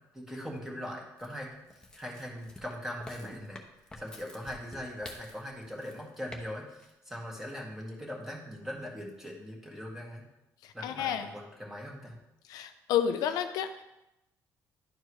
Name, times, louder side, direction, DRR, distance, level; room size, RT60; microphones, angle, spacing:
voice 1, 0.1-1.5 1.7-3.6 4.0-10.2 10.7-12.2, equal, 5° right, -1 dB, 1.9 m, -41 dB
sound 1, 1.2-6.4 6.7-6.9, left 2 dB, 10° left, 1.0 m, -49 dB
voice 2, 10.6-11.3 12.5-13.7, left 9 dB, 85° left, 8 dB, 0.5 m, -30 dB
11.0 x 4.5 x 3.2 m, 0.92 s
cardioid pair, 100°, 6 cm